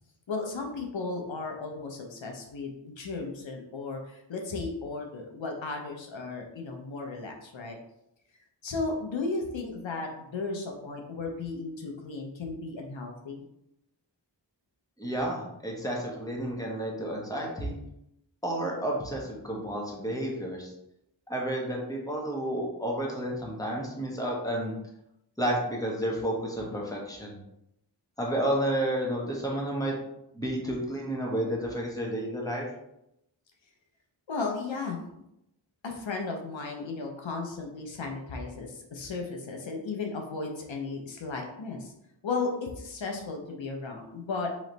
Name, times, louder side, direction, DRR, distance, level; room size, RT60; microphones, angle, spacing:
voice 1, 0.3-7.8 8.6-13.4 34.3-35.0 35.8-41.9 42.2-44.5, left 3 dB, 90° left, 2 dB, 0.8 m, -35 dB
voice 2, 15.0-17.8 18.4-20.7 21.3-24.7 25.4-27.4 28.2-29.9 30.3-32.7, right 1 dB, 10° left, -2 dB, 1.2 m, -31 dB
3.1 x 3.1 x 3.9 m, 0.81 s
wide cardioid pair, 45°, 45 cm